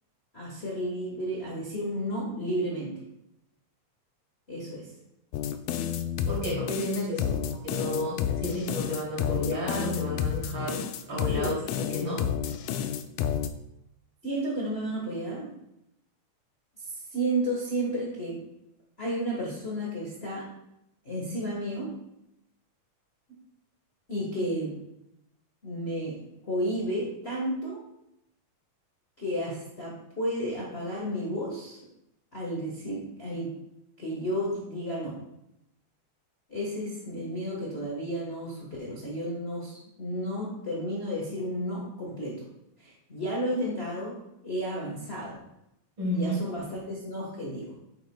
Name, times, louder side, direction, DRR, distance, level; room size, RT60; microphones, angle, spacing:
voice 1, 0.3-3.0 4.5-4.9 7.3-7.4 11.1-11.5 14.2-15.5 16.9-18.4 19.0-20.4 21.0-21.9 24.1-24.7 25.6-26.2 26.4-27.8 29.2-31.8 32.3-33.5 34.0-35.2 36.5-42.5 42.8-45.4 46.1-47.7, equal, 60° left, -5 dB, 0.6 m, -32 dB
sound 1, 5.3-13.5, left 8 dB, 80° left, 1.8 m, -30 dB
voice 2, 6.2-10.8 11.1-11.5 11.9-12.2 46.0-46.4, equal, 40° right, -6 dB, 3.3 m, -32 dB
9.1 x 7.7 x 2.3 m, 0.84 s
omnidirectional pair, 3.6 m